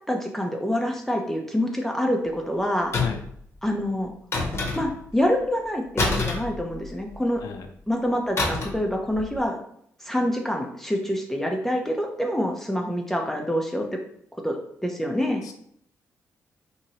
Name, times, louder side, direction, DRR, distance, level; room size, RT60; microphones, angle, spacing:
voice 1, 0.1-2.9 3.6-4.1 4.8-7.4 7.9-9.6 10.0-14.0 14.4-15.4, equal, 5° left, 1 dB, 0.5 m, -26 dB
sound 1, 2.9-3.4 4.3-5.1 6.0-7.1 8.4-8.9 9.1-9.4, left 3 dB, 40° left, 0.8 m, -27 dB
voice 2, 3.0-3.2 7.4-7.7 15.4-15.5, left 7 dB, 75° left, 5 dB, 0.4 m, -32 dB
2.8 x 2.7 x 2.8 m, 0.68 s
supercardioid pair, 55°, 6 cm